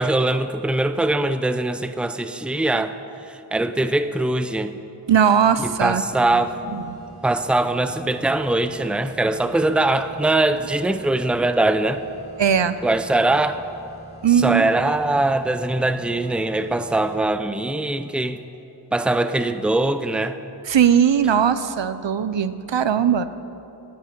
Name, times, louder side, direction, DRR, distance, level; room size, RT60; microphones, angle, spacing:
voice 1, 0.0-4.8 5.6-6.6 7.2-12.0 12.8-13.6 14.4-18.4 18.9-20.4, right 2 dB, ahead, 10 dB, 0.6 m, -22 dB
voice 2, 5.1-6.4 6.7-6.8 12.4-12.7 14.2-14.7 20.7-23.2, right 8 dB, 70° right, 13 dB, 0.7 m, -19 dB
sound 1, 6.1-17.5, right 1 dB, 15° left, 2.9 m, -45 dB
16.0 x 10.0 x 8.5 m, 2.8 s
wide cardioid pair, 70°, 45 cm